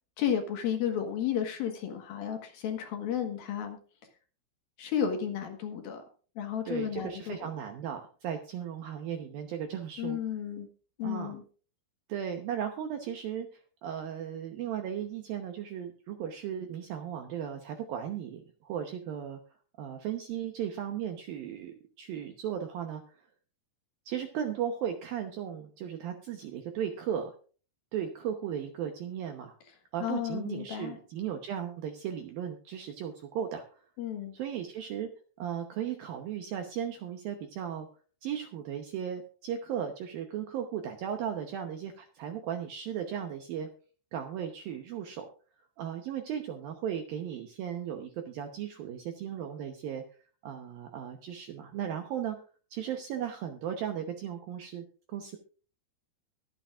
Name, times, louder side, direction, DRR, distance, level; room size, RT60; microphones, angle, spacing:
voice 1, 0.2-3.8 4.8-6.0 6.4-7.4 10.0-10.7 11.0-11.4 30.0-31.0 34.0-34.3, left 9 dB, 65° left, 5 dB, 2.8 m, -32 dB
voice 2, 6.7-10.2 11.0-11.4 12.1-19.4 19.8-23.3 24.1-27.3 27.9-29.6 29.9-33.9 34.3-35.1 35.4-37.9 38.2-43.7 44.1-45.3 45.8-50.0 50.4-52.4 52.7-55.4, right 9 dB, 75° right, 5 dB, 2.2 m, -36 dB
23.0 x 8.8 x 2.5 m, 0.39 s
omnidirectional pair, 5.4 m